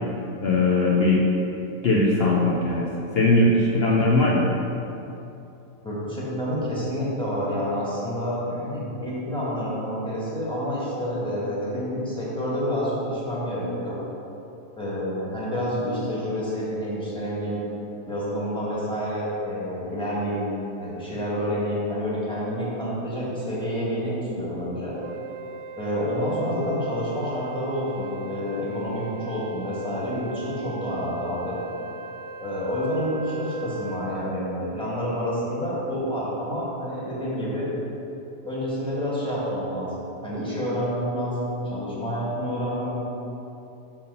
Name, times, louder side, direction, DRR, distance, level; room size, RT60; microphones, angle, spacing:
voice 1, 0.4-1.3 1.8-2.9 3.1-4.5, left 2 dB, 80° left, -3 dB, 0.5 m, -20 dB
voice 2, 5.8-14.0 14.8-17.6 18.1-20.5 20.8-25.0 25.8-31.5 32.4-37.6 38.4-42.9, equal, 5° left, -7 dB, 1.3 m, -28 dB
Wind instrument woodwind instrument, 25.0-34.1, right 3 dB, 85° right, 0.6 m, -40 dB
5.5 x 4.4 x 5.4 m, 2.9 s
omnidirectional pair, 1.8 m